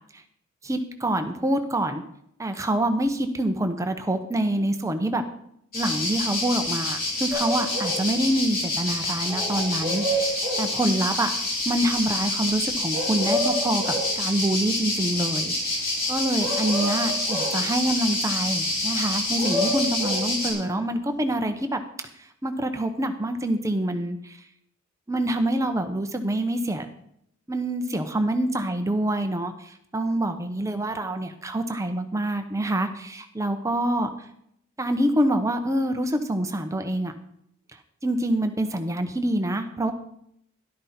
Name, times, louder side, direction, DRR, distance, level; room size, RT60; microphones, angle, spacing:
voice 1, 0.6-2.0 2.4-5.2 5.7-21.8 22.4-24.4 25.1-26.9 27.5-34.1 34.8-37.1 38.0-39.9, right 1 dB, 15° right, 7 dB, 0.9 m, -26 dB
sound 1, 5.7-20.5, left 2 dB, 45° left, 4.2 m, -27 dB
sound 2, 7.3-8.0 9.3-10.7 12.9-14.1 16.4-17.6 19.1-20.3, equal, ahead, 6.7 m, -29 dB
13.0 x 11.5 x 4.4 m, 0.74 s
head